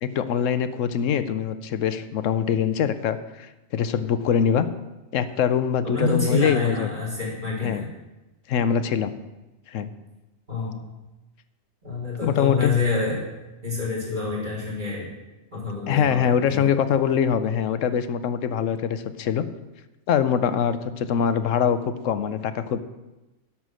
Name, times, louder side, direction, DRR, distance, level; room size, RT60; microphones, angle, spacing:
voice 1, 0.0-4.7 5.1-6.9 7.6-7.9 8.5-9.2 9.7-9.9 12.2-12.7 15.9-19.4 20.1-22.8, left 8 dB, 70° left, 12 dB, 1.0 m, -23 dB
voice 2, 5.8-7.8 10.5-10.8 11.8-13.3 13.6-15.1 15.5-16.7, left 4 dB, 35° right, -7 dB, 3.9 m, -27 dB
11.5 x 6.1 x 6.3 m, 1.1 s
omnidirectional pair, 1.4 m